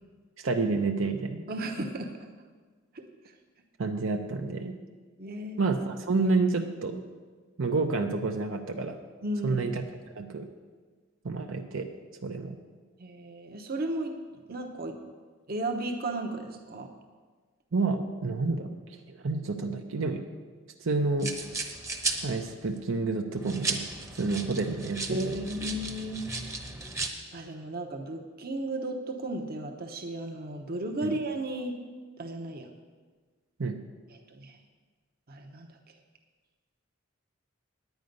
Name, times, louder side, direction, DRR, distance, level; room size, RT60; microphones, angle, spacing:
voice 1, 0.4-1.4 3.8-4.7 5.6-7.0 7.6-9.0 9.4-9.8 10.2-10.5 11.2-11.9 12.2-12.6 17.7-18.7 19.1-20.2 20.8-21.3 22.2-23.9 24.2-25.4 31.0-31.1 33.6-33.8, right 3 dB, 70° right, 4 dB, 0.7 m, -29 dB
voice 2, 1.5-2.1 2.9-3.0 5.2-5.6 9.2-9.7 13.0-14.1 14.5-15.0 15.5-16.9 25.1-26.3 27.3-31.8 32.2-32.7 34.3-34.6 35.3-35.7, right 1 dB, 50° right, 3 dB, 0.9 m, -34 dB
sound 1, 21.2-22.8 23.4-27.1, right 3 dB, 15° right, 0.9 m, -35 dB
9.5 x 9.3 x 5.3 m, 1.4 s
head